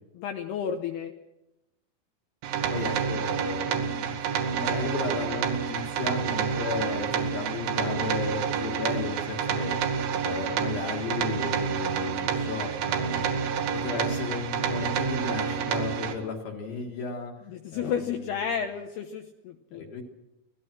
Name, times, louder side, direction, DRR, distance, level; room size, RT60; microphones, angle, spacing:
voice 1, 0.1-1.1 17.5-19.9, left 7 dB, 80° left, 5 dB, 2.3 m, -32 dB
sound 1, 2.4-16.1, right 7 dB, 70° right, 3.9 m, -28 dB
voice 2, 2.7-9.8 10.2-17.3 17.7-18.6 19.7-20.0, left 4 dB, 55° left, 1 dB, 2.9 m, -35 dB
26.0 x 17.0 x 6.2 m, 0.94 s
omnidirectional pair, 6.0 m